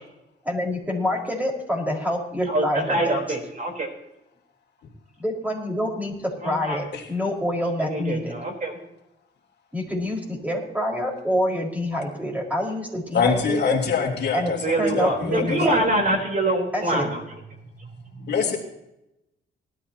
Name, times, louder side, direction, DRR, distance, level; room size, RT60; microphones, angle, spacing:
voice 1, 0.4-3.1 5.2-6.1 6.4-8.3 9.7-13.8 14.3-14.5 14.8-15.8 16.7-17.1, equal, 5° right, -1 dB, 4.9 m, -26 dB
voice 2, 2.5-3.9 6.4-6.8 7.8-8.8 14.5-17.2, right 1 dB, 40° right, 2 dB, 3.9 m, -24 dB
voice 3, 13.1-15.6 18.3-18.6, left 6 dB, 60° left, 1 dB, 3.1 m, -24 dB
19.0 x 12.5 x 2.9 m, 0.87 s
cardioid pair, 90°, 20 cm